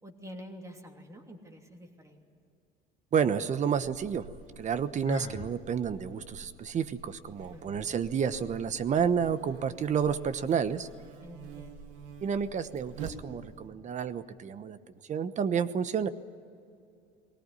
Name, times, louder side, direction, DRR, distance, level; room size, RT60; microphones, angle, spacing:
voice 1, 0.0-2.2 7.5-8.0 11.2-11.9, equal, 15° right, 3 dB, 2.9 m, -48 dB
voice 2, 3.1-4.3 4.6-10.9 12.2-14.8 15.1-16.1, right 7 dB, 40° right, 13 dB, 1.1 m, -30 dB
Buzz, 3.7-13.7, right 5 dB, 85° right, 2.4 m, -48 dB
Sigh, 5.0-5.6, left 6 dB, 30° left, 1.2 m, -38 dB
20.5 x 18.0 x 9.8 m, 2.5 s
cardioid pair, 120°, 20 cm